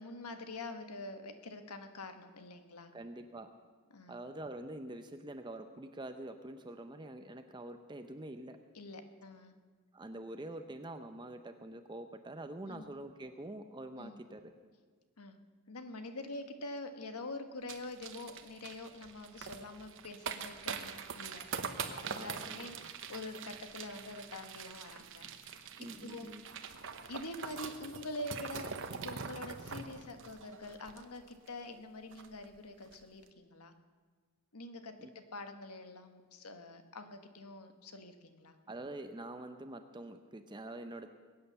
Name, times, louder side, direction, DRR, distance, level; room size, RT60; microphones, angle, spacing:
voice 1, 0.0-2.9 3.9-4.2 8.7-9.5 12.7-12.9 14.0-14.2 15.2-15.4 15.7-25.7 26.0-26.3 27.1-28.7 29.0-33.7 34.5-38.5, left 2 dB, 85° left, 7 dB, 1.4 m, -46 dB
voice 2, 2.9-3.5 4.1-8.6 9.9-14.5 22.1-22.9 25.8-26.4 35.0-35.1 38.7-41.1, right 1 dB, 20° right, 7 dB, 0.6 m, -46 dB
sound 1, 17.7-31.5 31.8-31.9 32.1-32.4 32.8-33.0, right 6 dB, 60° right, 0.9 m, -44 dB
21.5 x 9.0 x 6.9 m, 1.5 s
head